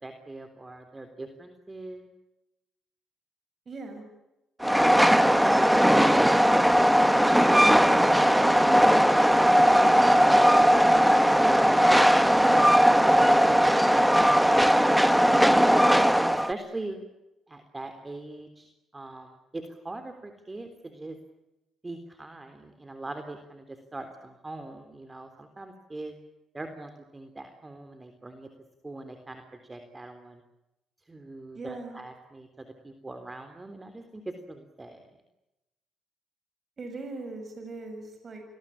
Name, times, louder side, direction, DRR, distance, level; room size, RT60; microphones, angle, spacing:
voice 1, 0.0-2.1 7.8-11.9 12.3-14.1 15.1-16.0 16.3-17.0 17.5-21.2 21.8-26.1 26.5-28.5 28.8-30.4 31.1-35.0, right 2 dB, 20° right, 7 dB, 3.5 m, -41 dB
voice 2, 3.7-4.0 31.5-32.0 36.8-38.4, right 3 dB, 40° right, 5 dB, 7.2 m, -39 dB
Train, 4.6-16.5, equal, 5° right, 1.4 m, -19 dB
29.5 x 21.0 x 8.7 m, 0.94 s
cardioid pair, 90°, 0 cm